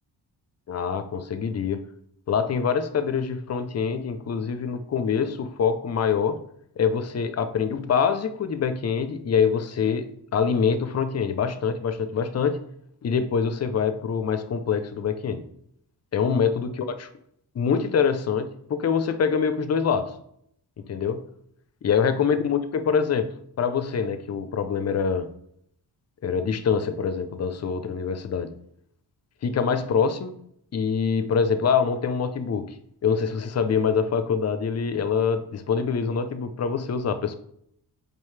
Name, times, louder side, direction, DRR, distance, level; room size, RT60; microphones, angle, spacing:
voice 1, 0.7-1.8 2.3-6.4 6.8-12.6 13.0-15.4 16.1-17.1 17.5-20.1 20.8-21.2 21.8-25.3 26.2-28.5 29.4-30.3 30.7-32.7 33.0-37.4, left 6 dB, 40° left, 0.5 m, -25 dB
7.4 x 5.1 x 3.2 m
wide cardioid pair, 170°, 40 cm